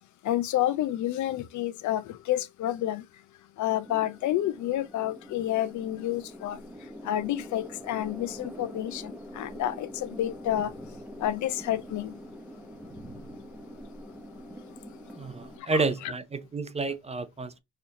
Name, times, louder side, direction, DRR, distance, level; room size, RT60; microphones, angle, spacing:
voice 1, 0.2-3.0 3.6-6.6 7.0-10.7 11.2-12.1 15.7-15.8, left 12 dB, 70° left, 0.5 m, -29 dB
sound 1, 3.8-15.6, equal, 5° right, 0.9 m, -45 dB
voice 2, 15.1-17.6, right 3 dB, 20° right, 0.5 m, -30 dB
4.3 x 2.5 x 2.8 m
cardioid pair, 90°, 30 cm